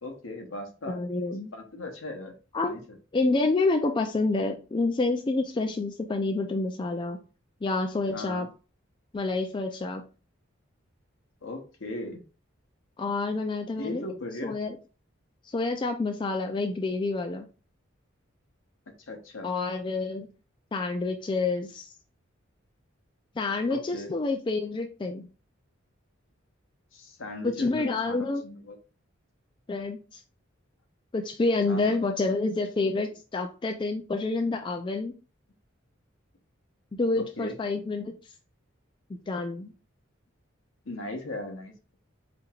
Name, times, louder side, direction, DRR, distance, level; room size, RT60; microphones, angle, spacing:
voice 1, 0.0-1.0 1.5-2.3 2.6-3.0 8.1-8.5 11.4-12.2 13.8-14.6 19.0-19.5 23.7-24.1 26.9-28.8 31.7-32.0 37.1-37.5 40.8-41.7, left 2 dB, 75° left, 4 dB, 0.9 m, -38 dB
voice 2, 0.9-1.5 2.5-2.7 3.1-7.2 7.6-8.5 9.1-10.0 13.0-14.1 14.4-14.8 15.5-17.4 19.4-20.3 20.7-21.9 23.4-25.3 27.4-28.4 29.7-30.2 31.1-35.1 36.9-38.1 39.1-39.7, left 3 dB, 25° left, 5 dB, 0.3 m, -28 dB
5.0 x 2.9 x 2.4 m, 0.34 s
head